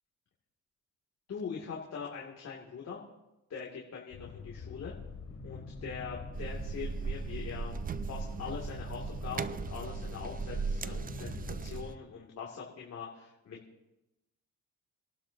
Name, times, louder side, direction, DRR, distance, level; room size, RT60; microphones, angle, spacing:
voice 1, 1.3-3.0 3.5-4.9 5.4-7.8 8.1-13.6, left 6 dB, 60° left, -3 dB, 2.7 m, -42 dB
sound 1, 4.1-11.9, left 6 dB, 75° left, 2.6 m, -46 dB
sound 2, 5.2-12.0, right 1 dB, ahead, 6.4 m, -51 dB
sound 3, 6.3-11.9, right 5 dB, 30° right, 0.5 m, -38 dB
26.5 x 12.0 x 2.9 m, 0.95 s
cardioid pair, 90°, 30 cm